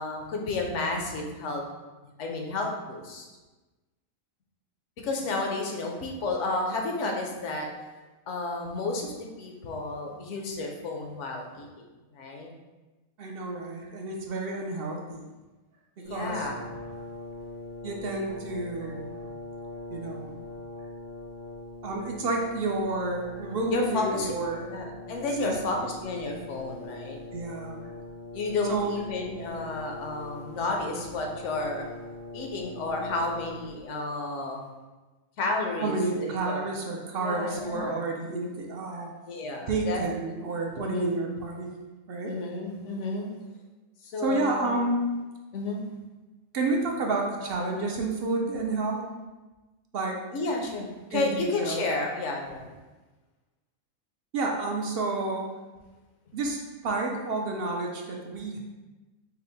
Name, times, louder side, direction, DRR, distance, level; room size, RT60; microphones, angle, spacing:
voice 1, 0.0-1.6 2.2-3.3 5.0-7.7 8.3-11.9 12.1-12.5 16.0-16.7 23.7-24.3 24.7-27.2 28.3-31.9 32.3-34.7 35.4-36.6 37.2-38.0 39.3-40.0 40.7-41.2 42.2-43.3 44.0-44.7 45.5-45.8 50.3-52.7, left 2 dB, 65° left, 2 dB, 1.0 m, -31 dB
voice 2, 13.2-15.3 16.1-16.5 17.8-19.1 19.9-20.4 21.8-24.7 25.4-25.5 27.3-27.8 28.7-28.9 35.8-39.1 39.7-41.7 42.1-42.3 44.2-45.2 46.5-49.0 49.9-50.2 51.1-51.8 54.3-55.5 56.3-58.6, right 2 dB, 60° right, 0 dB, 0.6 m, -30 dB
Brass instrument, 16.0-33.8, left 2 dB, 80° left, 1.6 m, -42 dB
5.5 x 2.0 x 3.9 m, 1.2 s
omnidirectional pair, 1.4 m